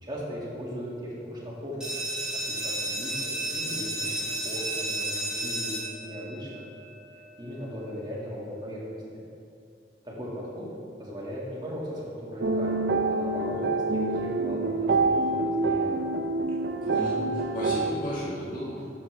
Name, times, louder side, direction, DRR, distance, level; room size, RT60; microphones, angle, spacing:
voice 1, 0.0-2.0 2.5-5.7 6.0-6.7 7.4-9.2 10.0-10.7 11.0-15.9, equal, 25° right, -6 dB, 1.9 m, -38 dB
sound 1, 1.8-7.2, right 1 dB, 5° right, 2.0 m, -32 dB
sound 2, 12.4-17.9, right 3 dB, 70° right, 0.5 m, -26 dB
voice 2, 16.8-18.8, left 1 dB, 50° left, -6 dB, 1.8 m, -34 dB
11.5 x 7.3 x 3.4 m, 2.6 s
head